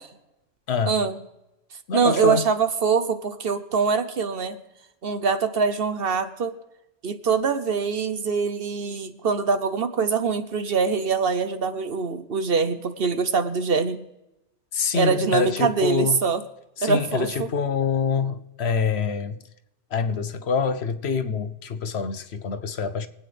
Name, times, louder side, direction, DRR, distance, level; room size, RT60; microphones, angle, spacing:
voice 1, 0.9-1.2 1.9-4.6 5.0-6.5 7.0-14.0 14.9-16.4 16.8-17.5, right 5 dB, 55° right, 1.0 m, -23 dB
voice 2, 1.9-2.5 14.7-16.2 16.8-19.4 19.9-23.1, left 6 dB, 65° left, 1.0 m, -26 dB
24.5 x 8.9 x 3.3 m
omnidirectional pair, 1.2 m